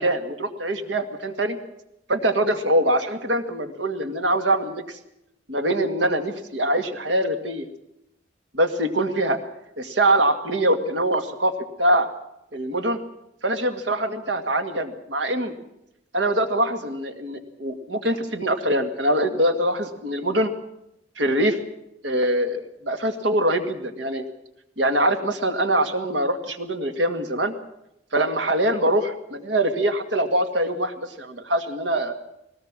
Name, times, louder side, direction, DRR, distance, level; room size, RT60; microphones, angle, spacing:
voice 1, 0.0-1.6 2.1-5.0 5.5-7.7 8.5-9.4 9.8-11.5 11.8-12.1 12.5-13.0 13.4-15.5 16.1-20.5 21.2-21.6 22.0-24.2 24.8-27.5 28.1-32.1, right 1 dB, 80° right, 7 dB, 2.0 m, -23 dB
20.0 x 18.0 x 7.5 m, 0.83 s
head